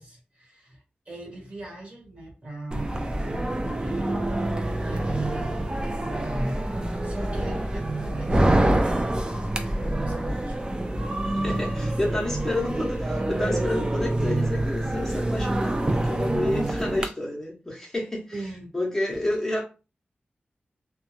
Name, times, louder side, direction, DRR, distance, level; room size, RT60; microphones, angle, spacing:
voice 1, 0.0-4.2 4.8-5.7 6.2-10.9 11.3-12.2 18.3-18.7 19.1-19.3, right 1 dB, 40° right, 1.2 m, -40 dB
sound 1, 2.7-17.1, right 1 dB, 25° right, 0.4 m, -26 dB
voice 2, 11.4-18.3 18.7-19.6, left 1 dB, 15° left, 0.7 m, -29 dB
2.3 x 2.1 x 3.0 m
wide cardioid pair, 90°, 4 cm